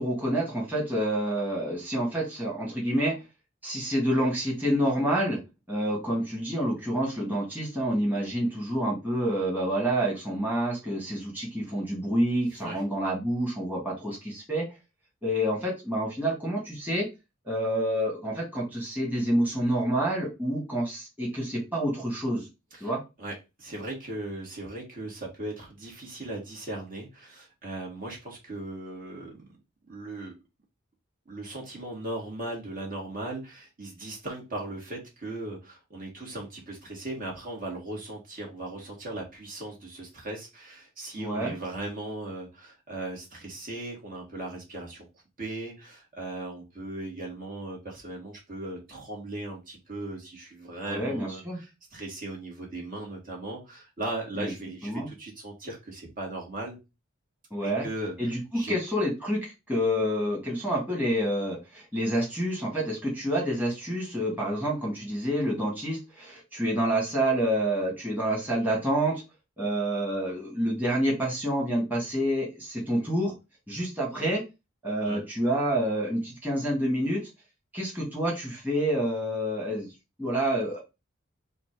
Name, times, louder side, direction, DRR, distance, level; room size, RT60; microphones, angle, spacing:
voice 1, 0.0-3.2 3.6-5.4 5.7-14.7 15.2-17.1 17.4-22.4 22.8-23.0 41.2-41.5 50.9-51.6 54.4-54.5 54.8-55.1 57.5-57.9 58.2-69.2 69.6-73.3 73.7-74.4 74.8-77.2 77.7-79.9 80.2-80.8, right 1 dB, 10° right, -5 dB, 1.6 m, -28 dB
voice 2, 23.2-29.5 29.9-30.3 31.3-45.1 45.4-56.8 57.6-58.7 75.0-75.2, right 2 dB, 45° right, -1 dB, 1.9 m, -38 dB
4.2 x 2.6 x 4.5 m, 0.25 s
head